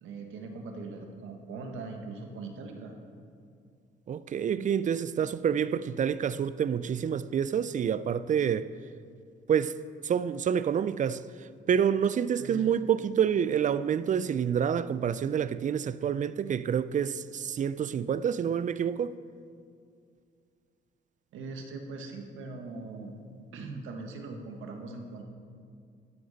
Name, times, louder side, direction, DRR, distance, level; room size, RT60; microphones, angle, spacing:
voice 1, 0.0-2.9 12.4-12.8 21.3-23.1 23.5-25.2, right 3 dB, 85° right, 1.5 m, -41 dB
voice 2, 4.1-8.7 9.5-9.8 10.0-11.2 11.7-19.2, right 8 dB, 40° right, 0.4 m, -28 dB
14.0 x 10.0 x 4.1 m
cardioid pair, 90°, 20 cm